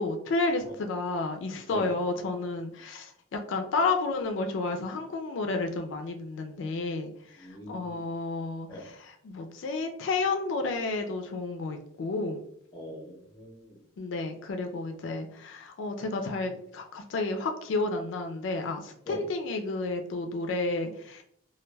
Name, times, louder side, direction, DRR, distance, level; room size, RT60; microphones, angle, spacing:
voice 1, 0.0-12.4 14.0-21.2, left 3 dB, 75° left, 5 dB, 0.3 m, -31 dB
voice 2, 7.4-8.0 8.7-8.9 12.7-13.8 19.1-19.2, equal, 20° left, 0 dB, 0.6 m, -41 dB
2.2 x 2.1 x 3.2 m, 0.67 s
head